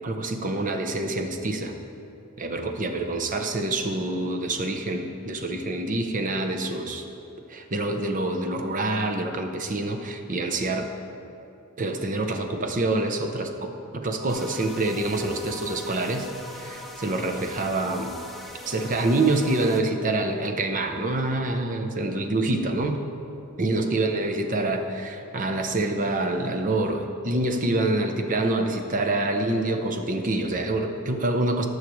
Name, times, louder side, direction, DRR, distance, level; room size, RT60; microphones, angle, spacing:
voice 1, 0.0-1.8 2.4-7.0 7.5-10.9 11.8-16.3 16.5-18.2 18.6-23.0 23.6-31.7, right 2 dB, 35° right, 5 dB, 0.7 m, -26 dB
sound 1, 14.3-19.8, left 1 dB, ahead, 0.6 m, -40 dB
18.5 x 6.5 x 3.1 m, 2.9 s
head